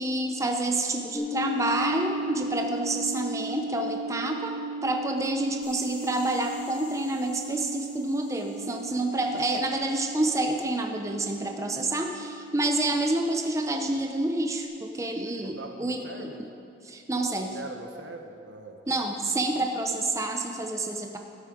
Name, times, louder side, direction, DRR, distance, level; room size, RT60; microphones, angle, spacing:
voice 1, 0.0-16.3 16.9-17.6 18.9-21.2, right 2 dB, 15° right, 3 dB, 0.6 m, -28 dB
sound 1, 1.1-14.6, right 1 dB, 10° left, 2.9 m, -37 dB
sound 2, 5.6-10.4, left 2 dB, 25° left, 2.6 m, -50 dB
voice 2, 15.4-16.5 17.5-19.0, right 2 dB, 85° right, 3 dB, 1.2 m, -42 dB
13.0 x 9.5 x 5.0 m, 2.5 s
head